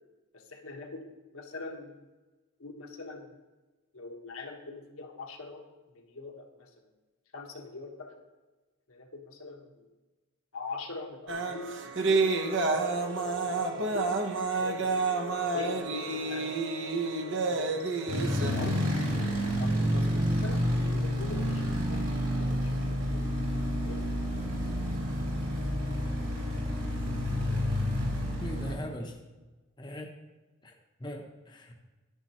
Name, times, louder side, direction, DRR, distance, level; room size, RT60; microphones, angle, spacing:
voice 1, 0.3-1.0 1.3-1.9 2.6-3.3 3.9-5.6 5.9-6.7 7.3-8.1 8.9-9.8 10.5-12.3 12.7-14.1 14.6-15.0 15.3-16.6 17.0-18.8 19.6-22.0 22.4-23.2 23.8-24.1, left 3 dB, 85° left, 1 dB, 1.5 m, -43 dB
sound 1, 11.3-18.5, right 3 dB, 60° right, 0.9 m, -29 dB
sound 2, 18.1-28.7, equal, 75° right, 3.0 m, -29 dB
voice 2, 28.4-29.2 29.8-30.1 30.6-30.7 31.0-31.7, equal, 20° left, 2 dB, 0.8 m, -40 dB
10.5 x 10.0 x 3.0 m, 1.2 s
head